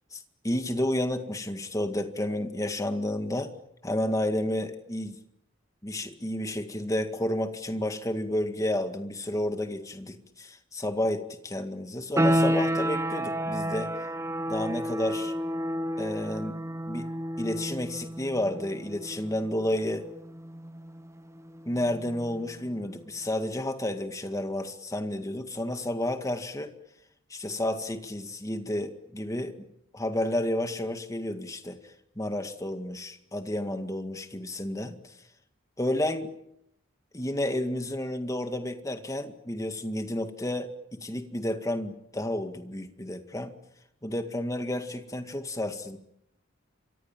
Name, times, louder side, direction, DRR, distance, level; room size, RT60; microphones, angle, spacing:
voice 1, 0.1-3.5 3.8-5.2 5.8-13.9 14.5-15.3 16.0-16.6 16.9-17.1 17.4-20.1 21.7-26.7 27.3-29.6 29.9-35.1 35.8-36.3 37.1-43.5 44.0-46.0, left 1 dB, 15° left, 7 dB, 2.0 m, -31 dB
sound 1, 12.2-22.7, equal, 15° right, 1.0 m, -31 dB
27.5 x 24.5 x 7.5 m, 0.79 s
head